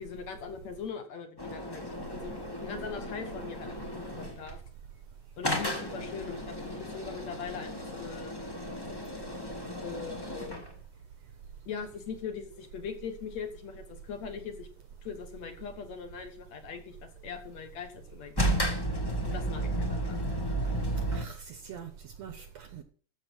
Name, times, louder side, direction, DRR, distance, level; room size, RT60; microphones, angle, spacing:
voice 1, 0.0-4.6 5.4-8.3 9.8-10.6 11.7-14.7 15.0-18.8 19.2-20.3, left 6 dB, 60° left, 7 dB, 2.3 m, -41 dB
sound 1, 1.4-4.5 5.4-10.7 18.4-21.3, right 1 dB, 20° left, 0.6 m, -33 dB
voice 2, 21.1-22.8, right 7 dB, 65° right, 9 dB, 1.8 m, -44 dB
13.5 x 6.7 x 6.2 m, 0.42 s
omnidirectional pair, 3.9 m